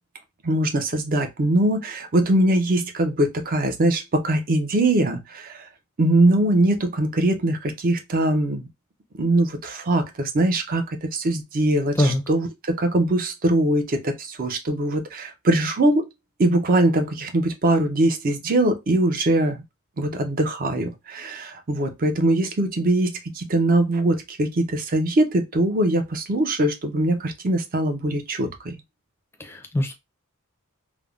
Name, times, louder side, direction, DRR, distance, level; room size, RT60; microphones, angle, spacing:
voice 1, 0.4-5.7 6.0-8.7 9.1-16.1 16.4-19.6 20.0-28.8, right 1 dB, 40° right, 0.5 m, -22 dB
voice 2, 29.4-29.9, left 1 dB, 10° left, 0.4 m, -22 dB
3.3 x 2.0 x 2.3 m
head